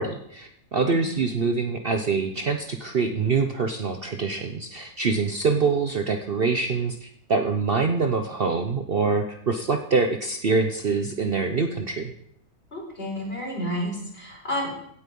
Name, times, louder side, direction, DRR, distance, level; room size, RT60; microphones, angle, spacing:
voice 1, 0.0-12.1, right 4 dB, 45° right, 6 dB, 0.9 m, -25 dB
voice 2, 12.7-14.7, equal, 40° left, -1 dB, 4.6 m, -31 dB
17.0 x 8.3 x 5.4 m, 0.70 s
omnidirectional pair, 1.5 m